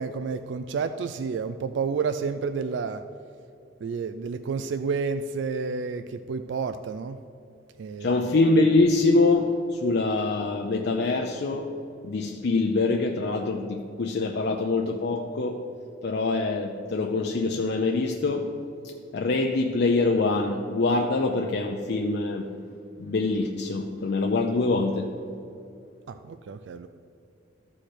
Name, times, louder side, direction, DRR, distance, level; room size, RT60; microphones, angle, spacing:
voice 1, 0.0-3.0 3.8-7.2 7.8-8.2 26.1-26.9, right 5 dB, 65° right, 10 dB, 0.3 m, -30 dB
voice 2, 8.0-11.7 12.0-15.6 16.0-18.5 19.1-22.5 23.0-25.1, left 3 dB, 60° left, 2 dB, 0.5 m, -24 dB
13.5 x 4.9 x 4.3 m, 2.7 s
head